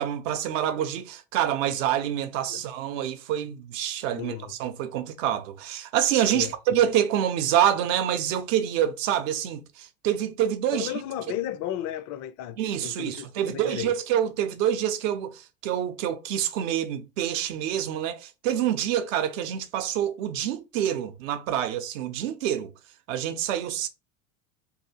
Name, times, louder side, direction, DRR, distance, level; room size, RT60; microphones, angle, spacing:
voice 1, 0.0-10.9 12.6-22.7 23.1-23.9, right 10 dB, 70° right, 0.6 m, -27 dB
voice 2, 4.1-4.5 6.3-6.5 10.7-13.9, left 12 dB, 45° left, 0.5 m, -34 dB
2.7 x 2.3 x 2.8 m
hypercardioid pair, 80°, 40 cm